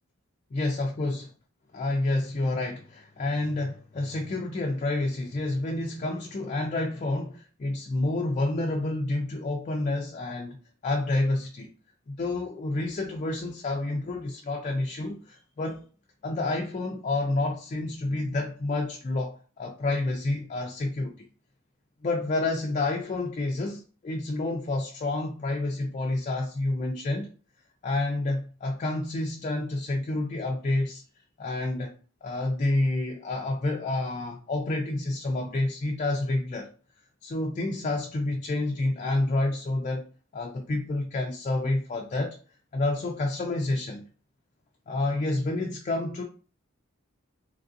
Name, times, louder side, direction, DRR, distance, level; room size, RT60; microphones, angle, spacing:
voice 1, 0.5-1.3 1.7-10.6 10.8-11.7 12.1-15.8 16.2-21.1 22.0-27.3 27.8-31.0 31.4-31.9 32.2-36.7 37.2-40.0 40.3-42.4 42.7-44.1 44.9-46.2, left 2 dB, 35° left, 0.3 m, -29 dB
3.2 x 2.5 x 2.5 m
head